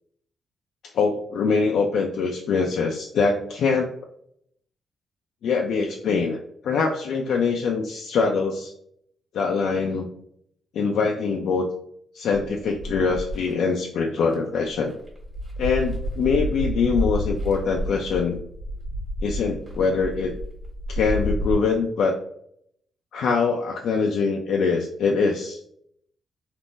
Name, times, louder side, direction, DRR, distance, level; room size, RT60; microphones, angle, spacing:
voice 1, 0.9-3.9 5.4-6.4 6.6-8.7 9.3-10.1 10.7-11.7 12.1-14.9 15.6-18.4 19.2-20.3 20.9-22.2 23.1-25.6, left 5 dB, 70° left, 1 dB, 0.3 m, -23 dB
sound 1, 12.3-13.5 14.2-14.3 14.7-21.5, equal, 20° right, 1.3 m, -30 dB
3.5 x 2.4 x 2.5 m, 0.69 s
wide cardioid pair, 160°, 0 cm